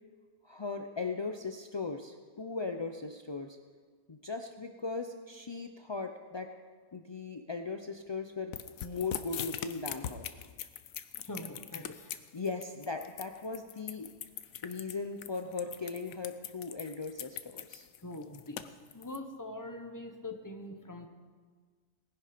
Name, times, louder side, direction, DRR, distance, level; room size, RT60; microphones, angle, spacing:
voice 1, 0.4-3.6 4.1-6.5 6.9-10.3 12.3-14.1 14.6-17.9, left 4 dB, 45° left, 5 dB, 0.3 m, -38 dB
sound 1, 8.5-19.2, left 10 dB, 85° left, 1.1 m, -41 dB
voice 2, 11.2-12.2 18.0-18.6 18.9-21.1, left 1 dB, 15° left, 5 dB, 1.0 m, -43 dB
19.0 x 10.5 x 5.1 m, 1.6 s
omnidirectional pair, 1.4 m